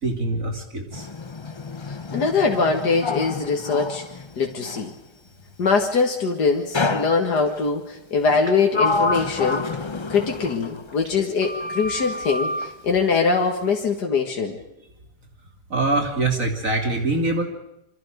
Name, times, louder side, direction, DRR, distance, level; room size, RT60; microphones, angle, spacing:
voice 1, 0.0-1.1 15.7-17.4, right 2 dB, 55° right, 3 dB, 3.4 m, -24 dB
Sliding door, 0.9-4.9 6.7-7.6 8.3-11.2 11.4-12.7, left 3 dB, 30° left, 0.5 m, -28 dB
voice 2, 1.9-4.0 4.4-4.9 5.6-9.7 10.1-14.6, left 4 dB, 85° left, 2 dB, 2.4 m, -22 dB
27.0 x 25.0 x 5.2 m, 0.85 s
omnidirectional pair, 1.7 m